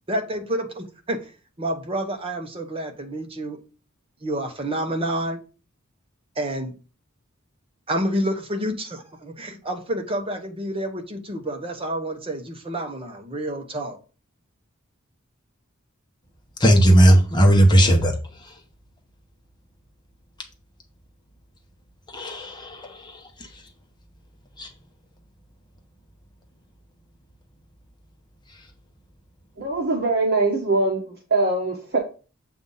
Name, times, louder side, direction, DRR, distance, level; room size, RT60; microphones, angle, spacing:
voice 1, 0.1-1.2 1.6-3.6 4.2-5.4 6.4-6.7 7.9-14.0, right 1 dB, 25° right, 4 dB, 1.0 m, -29 dB
voice 2, 16.6-18.1 22.1-23.2 24.6-24.7, right 1 dB, 20° left, 2 dB, 1.1 m, -16 dB
voice 3, 29.6-32.0, right 2 dB, 50° right, 0 dB, 1.1 m, -22 dB
7.8 x 2.7 x 5.5 m, 0.35 s
head